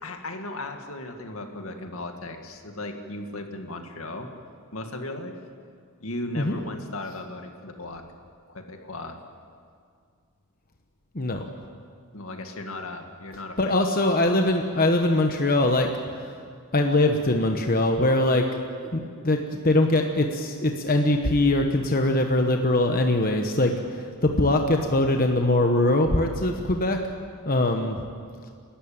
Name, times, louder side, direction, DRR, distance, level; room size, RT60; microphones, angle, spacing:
voice 1, 0.0-4.3 4.7-5.4 6.0-8.0 8.5-9.2 12.1-13.7, left 2 dB, 70° left, 4 dB, 2.2 m, -36 dB
voice 2, 13.6-15.9 16.2-16.4 16.7-18.5 18.8-27.0 27.4-28.0, left 1 dB, 40° left, 4 dB, 1.2 m, -22 dB
29.5 x 13.0 x 8.9 m, 2.2 s
head